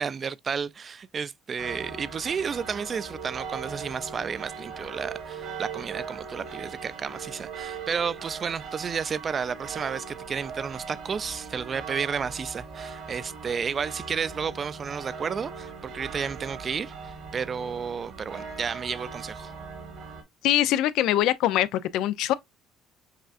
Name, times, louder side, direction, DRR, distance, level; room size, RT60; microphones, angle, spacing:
voice 1, 0.0-19.5, right 6 dB, 40° right, 0.3 m, -32 dB
sound 1, 1.6-20.2, right 5 dB, 65° right, 1.3 m, -40 dB
voice 2, 20.4-22.3, left 13 dB, 75° left, 0.3 m, -23 dB
6.3 x 2.4 x 2.4 m
supercardioid pair, 85°, 0 cm